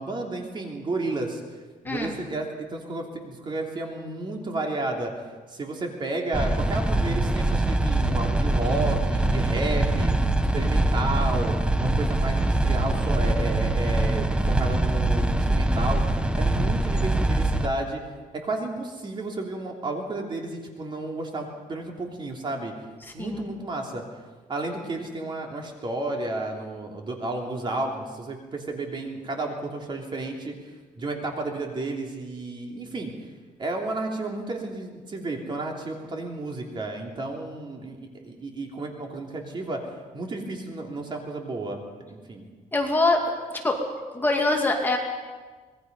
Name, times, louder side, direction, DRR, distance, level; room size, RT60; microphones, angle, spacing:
voice 1, 0.0-1.4 1.8-5.1 5.5-10.1 10.5-16.0 16.4-18.0 18.3-22.7 23.1-24.0 24.5-33.1 33.6-39.8 40.1-42.4, right 2 dB, 30° right, 1 dB, 3.1 m, -32 dB
voice 2, 1.8-2.2 23.0-23.4 42.7-43.8 44.1-45.0, left 2 dB, 15° left, 0 dB, 2.5 m, -24 dB
noise ambient, 6.3-17.7, right 2 dB, 5° right, 1.0 m, -23 dB
25.5 x 20.0 x 5.5 m, 1.4 s
cardioid pair, 150°, 15 cm